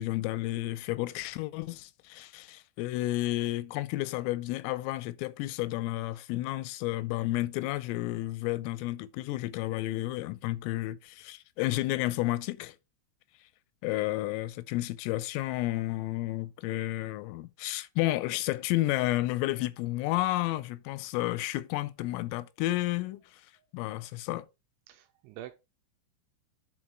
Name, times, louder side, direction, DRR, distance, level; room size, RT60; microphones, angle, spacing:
voice 1, 0.0-12.8 13.8-23.4 23.7-24.5, left 17 dB, 85° left, 3.2 m, -31 dB
voice 2, 24.9-25.6, right 12 dB, 80° right, 2.8 m, -45 dB
10.0 x 4.7 x 4.4 m
omnidirectional pair, 5.9 m